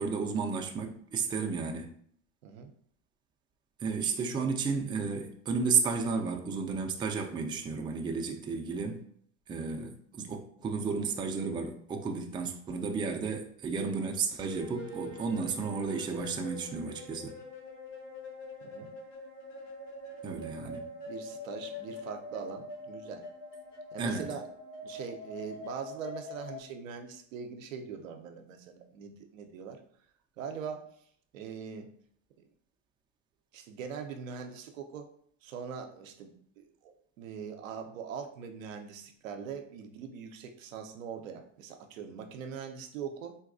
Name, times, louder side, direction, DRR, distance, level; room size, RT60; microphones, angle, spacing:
voice 1, 0.0-1.9 3.8-9.0 9.5-17.3 20.2-20.8 24.0-24.3, right 5 dB, 15° right, 3 dB, 0.3 m, -32 dB
sound 1, 14.4-26.6, left 2 dB, 75° left, 1.1 m, -44 dB
voice 2, 18.6-19.0 20.6-20.7 21.1-23.3 23.9-24.4 24.8-29.8 30.4-30.9 31.3-31.9 33.5-35.1 35.4-43.4, right 6 dB, 85° right, 5 dB, 0.6 m, -42 dB
3.9 x 2.3 x 2.5 m, 0.64 s
hypercardioid pair, 80°, 39 cm